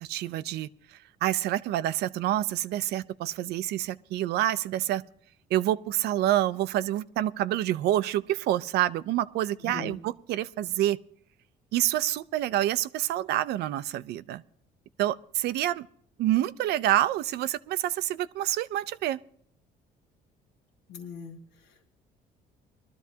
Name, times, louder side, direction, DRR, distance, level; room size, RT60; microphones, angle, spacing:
voice 1, 0.0-5.0 5.5-11.0 11.7-14.4 15.0-15.9 16.2-19.2, right 13 dB, 75° right, 0.5 m, -27 dB
voice 2, 9.6-10.0 20.9-21.9, left 6 dB, 90° left, 1.4 m, -41 dB
21.0 x 12.5 x 2.8 m
cardioid pair, 110°, 17 cm